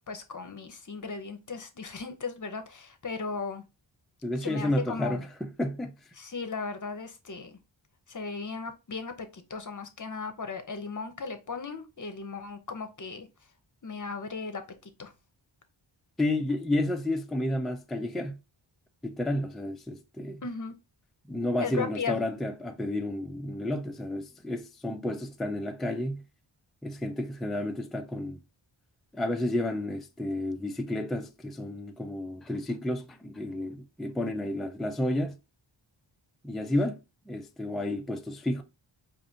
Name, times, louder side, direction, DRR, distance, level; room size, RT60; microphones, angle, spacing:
voice 1, 0.1-3.6 4.4-5.2 6.1-7.5 8.1-13.3 13.8-14.6 15.0-15.1 20.4-20.7 21.6-22.2, left 4 dB, 40° left, 0.8 m, -36 dB
voice 2, 4.2-5.9 16.2-18.4 19.0-20.4 21.3-26.2 26.8-28.4 29.1-35.4 36.4-37.0 37.3-38.6, left 1 dB, ahead, 0.4 m, -31 dB
4.8 x 2.6 x 2.6 m
wide cardioid pair, 60°, 48 cm